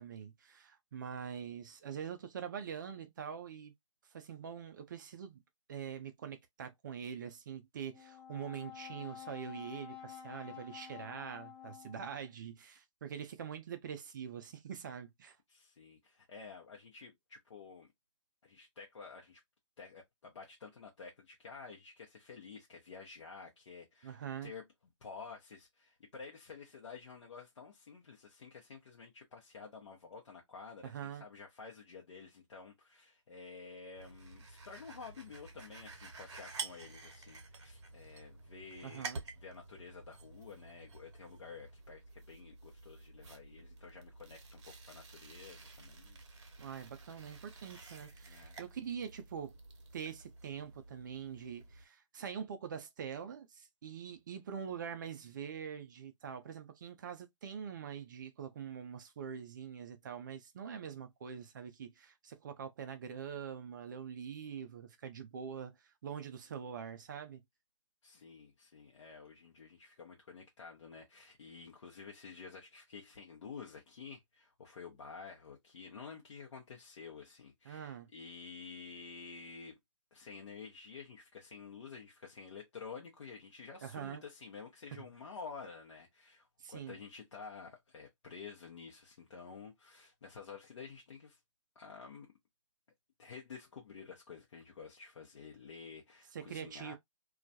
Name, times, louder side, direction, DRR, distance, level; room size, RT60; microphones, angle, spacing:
voice 1, 0.0-3.7 4.1-5.4 5.7-15.4 24.0-24.5 30.8-31.2 38.8-39.2 46.6-49.6 49.9-67.4 77.7-78.1 83.8-84.2 86.6-87.0 96.3-96.9, right 7 dB, 35° right, 0.4 m, -44 dB
Brass instrument, 7.9-12.3, left 10 dB, 30° left, 0.8 m, -50 dB
voice 2, 15.5-17.9 18.4-19.4 19.8-24.7 25.0-46.2 48.3-48.6 68.0-79.8 80.1-91.4 91.8-92.3 93.2-97.0, left 5 dB, 60° left, 0.7 m, -51 dB
sound 1, 33.9-51.8, right 4 dB, 60° right, 0.9 m, -50 dB
2.3 x 2.1 x 2.6 m
hypercardioid pair, 145°, 17 cm